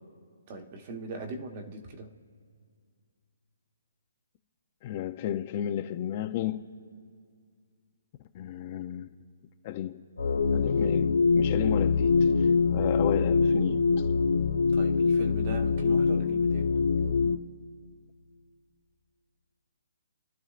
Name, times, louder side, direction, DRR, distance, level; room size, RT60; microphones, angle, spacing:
voice 1, 0.5-2.2 14.6-16.8, right 2 dB, 30° right, 1.2 m, -40 dB
voice 2, 4.8-6.7 8.3-9.1 9.6-10.0 10.5-14.0, left 11 dB, 30° left, 0.5 m, -33 dB
sound 1, 10.2-17.4, left 4 dB, 85° left, 0.9 m, -24 dB
30.0 x 12.0 x 2.5 m
hypercardioid pair, 165°, 0 cm